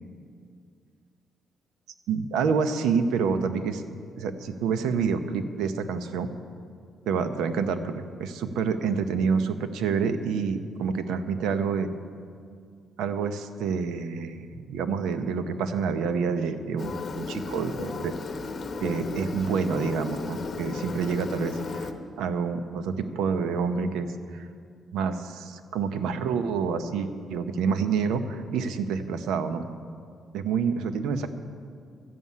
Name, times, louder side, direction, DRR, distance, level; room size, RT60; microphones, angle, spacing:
voice 1, 2.1-3.8 4.2-6.3 7.1-7.9 8.2-11.9 13.0-18.1 18.8-21.9 22.2-24.4 24.9-29.7 30.3-31.3, right 5 dB, 90° right, 10 dB, 0.8 m, -28 dB
Engine, 16.8-21.9, left 4 dB, 45° left, 1.0 m, -35 dB
12.5 x 7.4 x 9.5 m, 2.2 s
cardioid pair, 90°, 0 cm